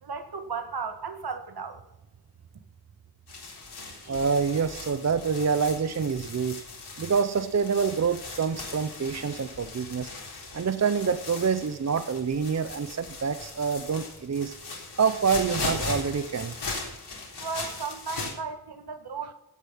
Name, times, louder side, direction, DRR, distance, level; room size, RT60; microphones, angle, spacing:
voice 1, 0.0-1.8 17.4-19.3, right 5 dB, 75° right, 7 dB, 1.7 m, -35 dB
sound 1, 3.3-18.3, left 3 dB, 90° left, 3.9 m, -38 dB
voice 2, 4.0-6.6 7.0-10.1 10.5-14.6 15.0-16.5, right 6 dB, 45° right, 10 dB, 0.7 m, -26 dB
16.5 x 7.1 x 5.7 m, 0.92 s
wide cardioid pair, 105°, 39 cm